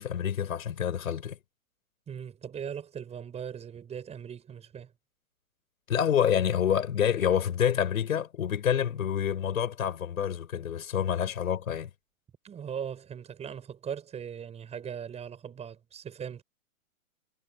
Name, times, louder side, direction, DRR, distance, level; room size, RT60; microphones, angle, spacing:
voice 1, 0.0-1.4 5.9-11.9, left 9 dB, 75° left, 5.2 m, -27 dB
voice 2, 2.1-4.9 12.4-16.4, right 8 dB, 15° right, 6.1 m, -39 dB
hypercardioid pair, 140°, 42 cm